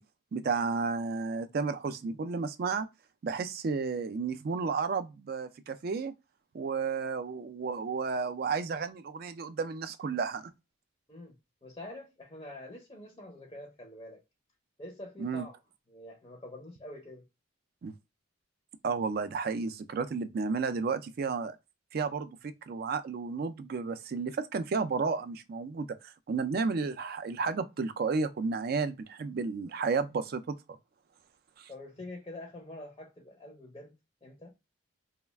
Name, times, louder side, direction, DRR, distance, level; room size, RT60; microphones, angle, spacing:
voice 1, 0.3-2.9 3.2-6.1 6.5-10.5 15.2-15.5 17.8-17.9 18.8-21.6 21.9-30.6 31.6-31.7, right 4 dB, 50° right, 0.3 m, -32 dB
voice 2, 11.6-14.2 14.8-15.6 15.9-17.3 31.7-34.0 34.2-34.5, left 1 dB, 20° left, 0.5 m, -46 dB
2.3 x 2.1 x 3.2 m
head